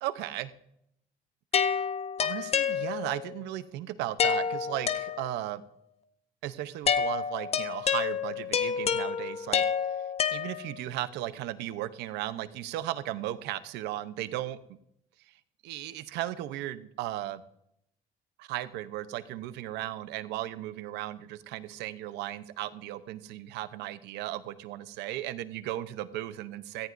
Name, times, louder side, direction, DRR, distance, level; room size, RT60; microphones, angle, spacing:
voice 1, 0.0-0.5 1.6-1.9 2.2-5.6 6.4-9.6 10.3-14.8 15.6-17.4 18.4-26.9, right 14 dB, 90° right, 13 dB, 0.8 m, -36 dB
sound 1, 1.5-3.3 4.2-5.6 6.9-11.0, left 7 dB, 40° left, 0.8 m, -29 dB
17.0 x 14.5 x 2.6 m, 0.77 s
cardioid pair, 110°, 17 cm